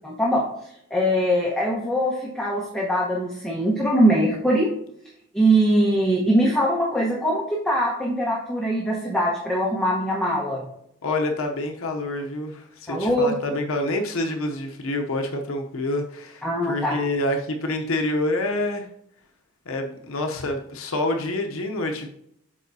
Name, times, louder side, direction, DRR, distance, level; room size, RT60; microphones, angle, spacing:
voice 1, 0.0-4.7 5.3-10.6 12.9-13.3 16.4-17.0, equal, 5° left, -4 dB, 1.1 m, -22 dB
voice 2, 11.0-18.9 19.7-22.1, left 2 dB, 70° left, 3 dB, 0.8 m, -27 dB
12.5 x 4.7 x 2.7 m, 0.73 s
head